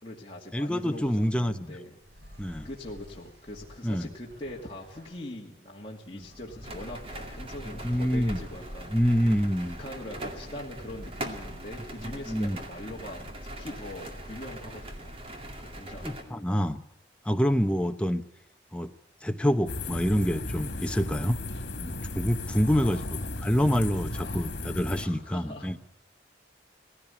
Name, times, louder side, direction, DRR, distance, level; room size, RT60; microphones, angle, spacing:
voice 1, 0.0-2.0 2.6-8.9 9.6-16.5 22.6-23.1 24.1-24.5 25.0-25.8, left 1 dB, 30° left, -3 dB, 2.3 m, -42 dB
voice 2, 0.5-1.8 2.4-2.7 3.8-4.1 6.1-6.2 7.8-8.4 8.9-9.8 12.0-12.6 16.0-16.8 17.2-18.2 18.7-18.9 19.2-21.4 21.8-23.0 23.4-25.8, equal, 5° left, 7 dB, 0.8 m, -26 dB
sound 1, 1.0-1.3 1.9-5.4 6.0-14.4, equal, 70° right, 4.9 m, -53 dB
sound 2, 6.6-16.2, right 1 dB, 30° right, 2.2 m, -41 dB
sound 3, 19.7-25.1, left 2 dB, 70° left, 2.1 m, -35 dB
18.5 x 16.0 x 9.9 m, 0.75 s
head